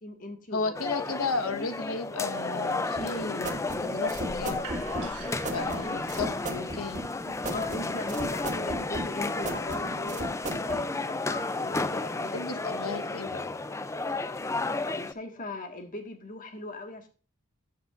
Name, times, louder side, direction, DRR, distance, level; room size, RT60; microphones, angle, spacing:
voice 1, 0.0-0.7 5.6-6.0 7.5-10.3 10.7-12.7 14.9-17.1, left 2 dB, 35° left, 5 dB, 1.7 m, -39 dB
voice 2, 0.5-4.6 5.5-7.0 12.1-13.4, left 4 dB, 75° left, 9 dB, 1.3 m, -34 dB
sound 1, 0.7-15.1, left 3 dB, 15° left, 0.4 m, -32 dB
sound 2, 3.0-10.8, right 1 dB, 35° right, 1.2 m, -36 dB
sound 3, 4.1-9.9, right 4 dB, 85° right, 1.8 m, -47 dB
14.0 x 7.6 x 2.5 m, 0.37 s
head